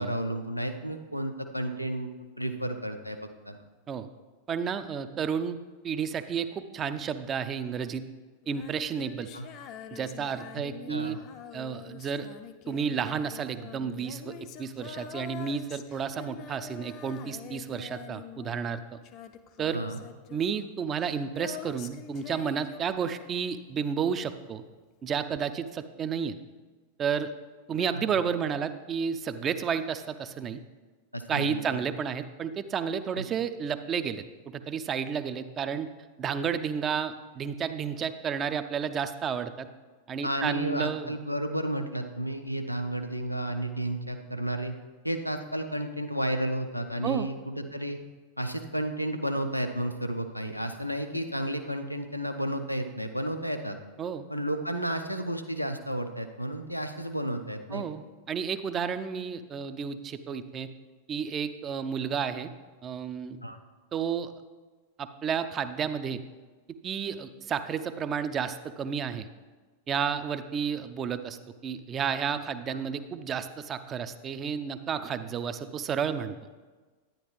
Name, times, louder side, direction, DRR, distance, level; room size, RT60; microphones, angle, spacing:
voice 1, 0.0-2.1 2.4-3.2 3.5-3.6 9.3-9.5 10.6-10.7 10.9-11.2 19.7-20.0 27.8-28.0 31.1-31.8 33.1-33.2 40.2-44.7 45.0-48.0 48.4-53.8 54.3-57.8 63.4-63.6 72.7-72.8, right 1 dB, 90° left, 6 dB, 0.6 m, -32 dB
voice 2, 4.5-5.6 5.8-8.0 8.5-9.3 9.9-11.2 11.5-12.3 12.7-19.0 19.6-19.8 20.3-24.6 25.0-26.4 27.0-27.3 27.7-30.6 31.3-35.9 36.2-39.7 40.1-41.1 47.0-47.3 54.0-54.3 57.7-60.7 61.1-62.5 62.8-63.4 63.9-64.3 65.0-66.2 66.8-69.3 69.9-76.3, right 7 dB, 25° right, 11 dB, 0.5 m, -31 dB
Female singing, 8.4-23.8 25.4-25.5, left 8 dB, 40° left, 0.5 m, -45 dB
10.5 x 9.8 x 3.1 m, 1.3 s
figure-of-eight pair, 90°, 0 cm